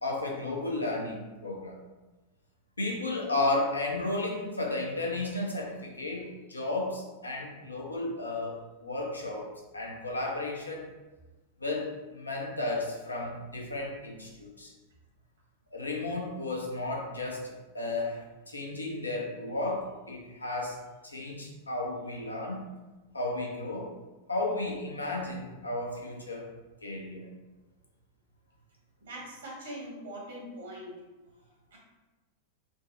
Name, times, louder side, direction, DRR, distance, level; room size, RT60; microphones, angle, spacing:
voice 1, 0.0-1.8 2.8-10.9 11.6-14.7 15.7-20.8 21.0-22.6 23.1-23.9 24.3-26.5 26.8-27.3, left 2 dB, 80° left, 0 dB, 0.5 m, -33 dB
voice 2, 29.1-30.9 31.7-31.8, right 1 dB, 65° right, -3 dB, 1.0 m, -42 dB
3.3 x 2.0 x 2.6 m, 1.2 s
figure-of-eight pair, 90°, 0 cm